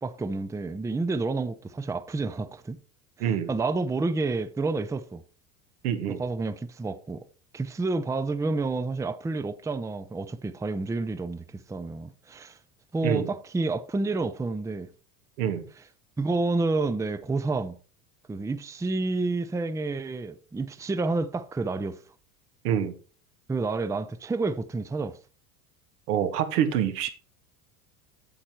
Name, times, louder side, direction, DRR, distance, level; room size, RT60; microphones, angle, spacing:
voice 1, 0.0-2.8 3.5-5.2 6.1-7.2 7.5-12.6 12.9-14.9 16.2-17.7 18.3-22.0 23.5-25.2, right 3 dB, 5° right, 0.5 m, -29 dB
voice 2, 3.2-3.5 5.8-6.2 13.0-13.3 15.4-15.6 22.6-22.9 26.1-27.1, right 9 dB, 80° right, 1.6 m, -26 dB
8.7 x 7.6 x 4.5 m
hypercardioid pair, 90°, 44 cm